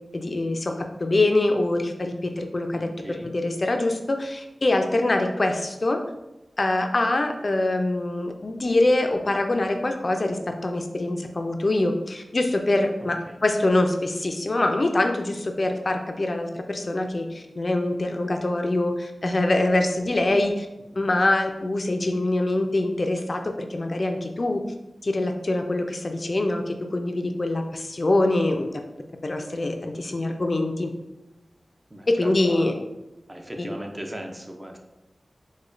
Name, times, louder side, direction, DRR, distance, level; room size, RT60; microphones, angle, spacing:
voice 1, 0.1-0.7 1.0-6.0 6.6-20.7 21.0-23.4 23.7-24.6 25.0-28.7 29.2-30.9 32.1-32.7 33.6-33.7, left 2 dB, 45° left, 4 dB, 0.3 m, -24 dB
voice 2, 2.7-3.3 13.3-13.4 31.9-32.8 33.3-34.8, equal, 20° right, 2 dB, 0.5 m, -38 dB
4.8 x 2.1 x 2.5 m, 0.96 s
wide cardioid pair, 65°, 0 cm